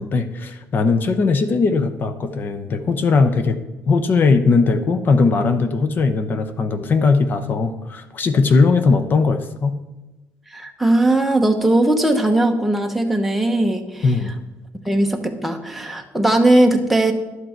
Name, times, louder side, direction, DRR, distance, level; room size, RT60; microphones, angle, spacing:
voice 1, 0.0-3.6 3.9-9.8 14.0-14.3, left 4 dB, 40° left, 9 dB, 0.7 m, -19 dB
voice 2, 10.5-14.0 14.9-17.1, right 1 dB, ahead, 3 dB, 1.1 m, -18 dB
11.0 x 7.8 x 4.6 m, 1.1 s
cardioid pair, 130°, 5 cm